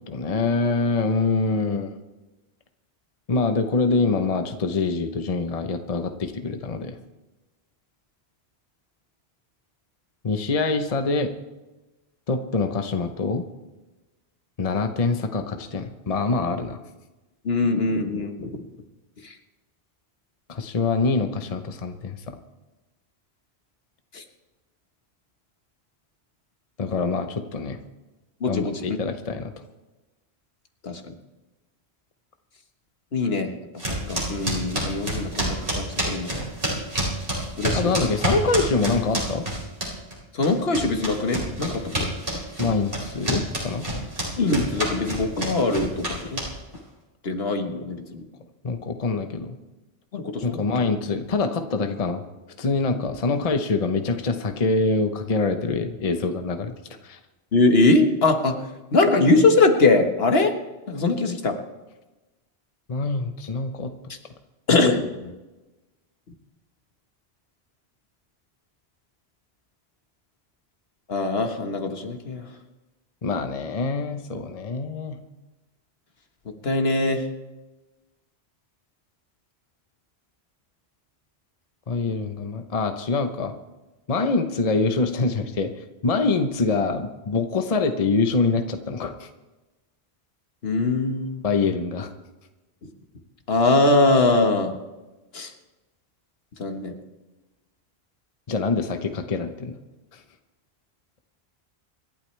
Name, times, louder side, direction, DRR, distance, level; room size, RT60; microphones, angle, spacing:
voice 1, 0.1-2.0 3.3-7.0 10.2-11.3 12.3-13.4 14.6-16.8 20.5-22.4 26.8-27.8 28.5-29.5 37.7-39.4 42.6-43.9 48.6-49.6 50.4-52.2 52.6-56.7 57.0-57.2 62.9-64.1 73.2-75.2 81.9-83.5 84.1-85.7 86.0-89.3 91.4-92.1 98.5-99.8, left 3 dB, 35° left, 7 dB, 0.9 m, -25 dB
voice 2, 17.4-18.6 19.2-19.3 24.1-24.2 28.4-29.0 30.8-31.0 33.1-33.5 34.1-36.4 37.6-37.9 40.3-42.1 44.4-46.4 47.2-48.2 50.1-50.6 57.5-58.6 58.9-60.5 60.9-61.6 64.1-64.2 64.7-65.3 71.1-72.5 76.6-77.3 90.6-91.4 93.5-94.7 95.3-95.5 96.6-96.9, left 3 dB, 65° left, 5 dB, 1.6 m, -22 dB
sound 1, 33.8-40.2 40.4-46.8, right 1 dB, 55° right, 4.5 m, -28 dB
26.5 x 12.0 x 3.3 m, 1.1 s
omnidirectional pair, 1.1 m